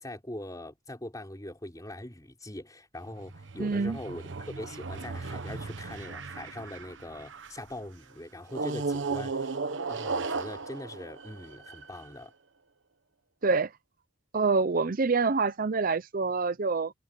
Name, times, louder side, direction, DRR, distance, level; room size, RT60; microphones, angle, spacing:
voice 1, 0.0-9.5 9.9-12.3, left 1 dB, 20° left, 4.5 m, -42 dB
sound 1, 3.1-7.7 8.5-12.1, right 4 dB, 70° right, 1.1 m, -36 dB
voice 2, 3.6-4.0 13.4-13.7 14.3-16.9, right 4 dB, 45° right, 0.6 m, -26 dB
head